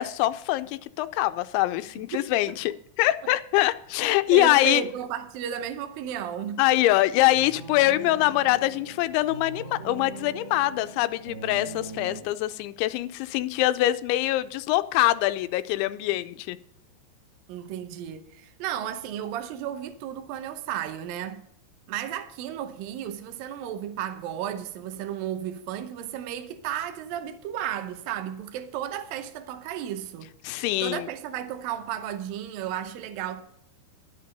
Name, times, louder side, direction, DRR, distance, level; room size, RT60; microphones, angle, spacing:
voice 1, 0.0-2.7 3.0-4.8 6.6-16.6 30.4-31.1, left 16 dB, 90° left, 3.0 m, -24 dB
voice 2, 2.0-2.6 4.3-6.6 17.5-21.4 21.9-33.4, right 10 dB, 80° right, 2.1 m, -34 dB
sound 1, 7.1-12.2, right 3 dB, 30° right, 2.0 m, -42 dB
11.5 x 8.2 x 5.3 m
omnidirectional pair, 5.2 m